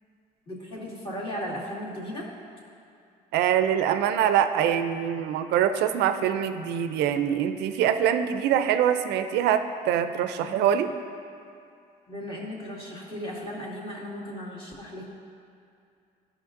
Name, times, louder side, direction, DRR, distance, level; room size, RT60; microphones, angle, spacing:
voice 1, 0.5-2.3 10.3-10.6 12.1-15.0, equal, 30° left, -5 dB, 2.0 m, -36 dB
voice 2, 3.3-10.9, right 9 dB, 80° right, 9 dB, 0.4 m, -24 dB
13.0 x 5.6 x 2.6 m, 2.4 s
cardioid pair, 110°, 17 cm